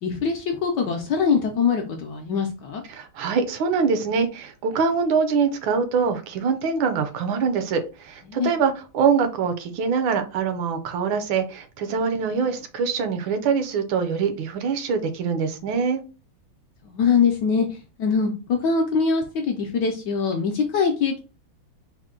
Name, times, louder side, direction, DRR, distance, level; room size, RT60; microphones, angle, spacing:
voice 1, 0.0-2.8 8.3-8.5 16.8-21.2, left 5 dB, 70° left, 3 dB, 1.0 m, -23 dB
voice 2, 2.9-16.0, right 5 dB, 75° right, 8 dB, 1.4 m, -24 dB
4.3 x 2.1 x 3.6 m, 0.33 s
omnidirectional pair, 2.2 m